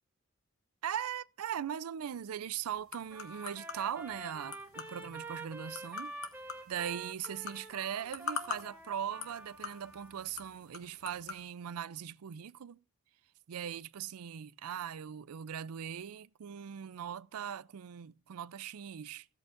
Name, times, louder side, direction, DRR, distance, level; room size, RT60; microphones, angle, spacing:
voice 1, 0.8-6.2 6.7-12.8 13.5-19.3, right 9 dB, 85° right, 0.4 m, -40 dB
sound 1, 2.0-11.4, left 5 dB, 70° left, 1.6 m, -46 dB
Trumpet, 3.1-10.2, right 2 dB, 10° right, 2.3 m, -47 dB
16.0 x 8.4 x 2.5 m
head